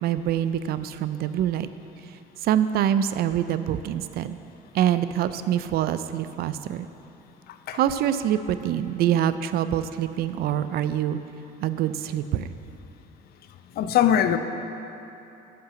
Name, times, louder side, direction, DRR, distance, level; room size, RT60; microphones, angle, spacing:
voice 1, 0.0-1.7 2.4-4.4 4.7-6.9 7.7-11.2 11.6-12.5, right 10 dB, 65° right, 12 dB, 0.4 m, -25 dB
voice 2, 13.8-14.4, left 10 dB, 65° left, 9 dB, 0.5 m, -20 dB
7.6 x 5.8 x 7.0 m, 2.9 s
cardioid pair, 110°, 17 cm